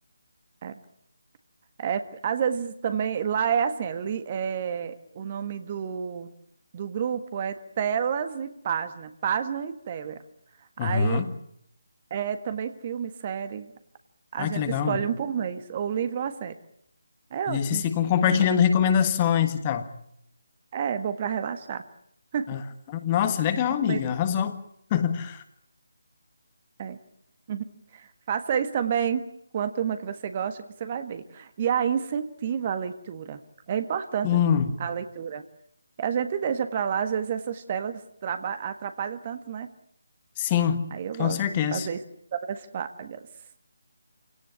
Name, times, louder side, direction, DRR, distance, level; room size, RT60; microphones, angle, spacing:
voice 1, 1.8-6.3 6.7-10.2 10.8-11.3 12.1-13.7 14.3-16.6 17.3-17.8 18.3-18.5 20.7-21.8 22.3-22.5 23.8-24.0 26.8-27.0 27.5-27.7 27.9-29.3 29.5-33.4 33.7-34.4 34.8-35.4 36.0-39.7 40.9-41.4 41.7-42.0 42.3-43.2, right 8 dB, 30° right, 10 dB, 1.6 m, -29 dB
voice 2, 10.8-11.3 14.4-15.0 17.5-19.9 22.5-22.6 22.9-24.6 24.9-25.4 34.2-34.8 40.4-40.8 41.2-41.9, left 8 dB, 20° left, 9 dB, 1.6 m, -24 dB
28.0 x 18.0 x 9.8 m, 0.75 s
figure-of-eight pair, 150°, 0 cm